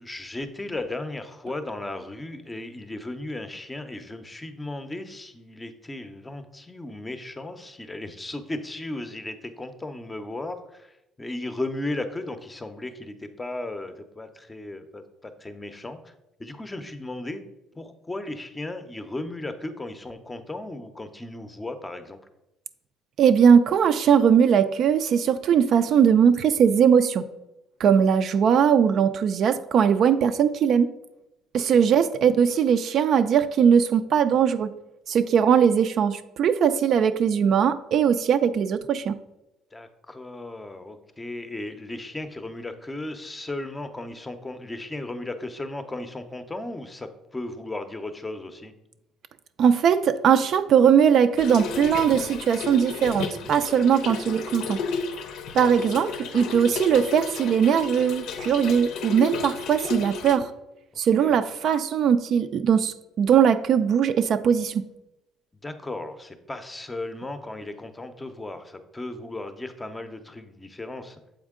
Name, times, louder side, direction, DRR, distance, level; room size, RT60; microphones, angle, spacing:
voice 1, 0.0-16.1 16.4-17.4 17.7-22.2 31.7-31.8 39.7-48.7 61.2-61.4 65.6-71.2, left 2 dB, 15° left, 9 dB, 0.6 m, -35 dB
voice 2, 23.2-27.2 27.8-30.9 31.5-34.7 35.1-39.1 49.6-54.8 55.5-56.1 56.3-60.5 61.0-64.9, right 7 dB, 55° right, 10 dB, 0.4 m, -20 dB
Trickle dribble / Fill (with liquid), 51.4-60.4, left 5 dB, 70° left, 0.6 m, -33 dB
7.2 x 4.4 x 3.6 m, 0.90 s
cardioid pair, 120°, 0 cm